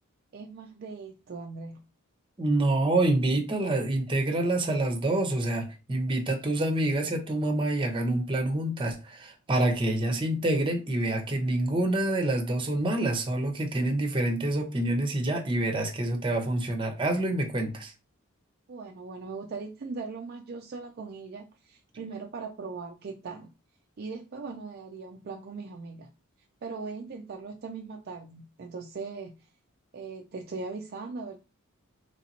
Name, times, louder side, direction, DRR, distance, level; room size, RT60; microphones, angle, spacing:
voice 1, 0.3-1.8 18.7-23.5 24.0-26.1 26.6-29.5 29.9-31.4, right 4 dB, 45° right, 3 dB, 0.4 m, -39 dB
voice 2, 2.4-17.9, right 1 dB, 25° right, 4 dB, 0.8 m, -27 dB
3.3 x 2.9 x 4.0 m, 0.29 s
head